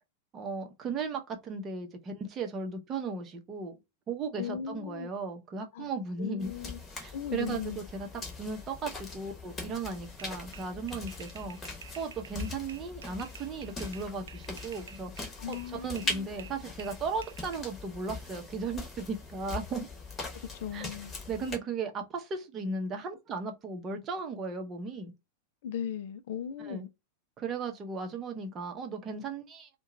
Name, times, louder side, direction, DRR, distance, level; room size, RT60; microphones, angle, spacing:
voice 1, 0.3-3.8 4.1-6.5 7.0-19.9 20.7-20.9 21.3-25.1 26.7-26.9 27.4-29.7, right 4 dB, 25° right, 0.7 m, -36 dB
voice 2, 4.4-5.1 5.7-5.9 6.2-6.8 7.1-7.8 15.4-16.3 20.3-21.1 25.6-26.9, left 8 dB, 55° left, 0.3 m, -38 dB
sound 1, 6.4-21.6, left 3 dB, 15° left, 1.1 m, -41 dB
sound 2, 10.2-15.7 16.0-17.6, right 8 dB, 65° right, 0.3 m, -50 dB
2.8 x 2.2 x 3.7 m
figure-of-eight pair, 90°, 0 cm